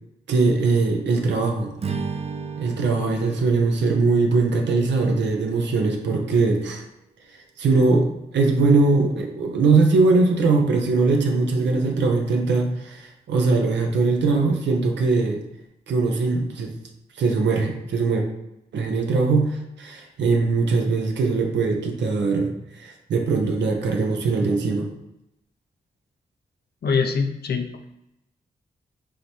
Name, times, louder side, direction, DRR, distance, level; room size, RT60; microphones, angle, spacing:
voice 1, 0.3-1.7 2.6-6.8 7.6-8.1 8.3-15.4 15.9-16.7 17.2-18.2 18.7-22.5 22.8-24.9, right 3 dB, 90° right, 2 dB, 0.6 m, -21 dB
Strum, 1.8-6.2, right 5 dB, 35° right, 0.5 m, -35 dB
voice 2, 26.8-27.9, left 5 dB, 65° left, 6 dB, 0.6 m, -24 dB
4.8 x 2.8 x 3.0 m, 0.86 s
cardioid pair, 45°, 18 cm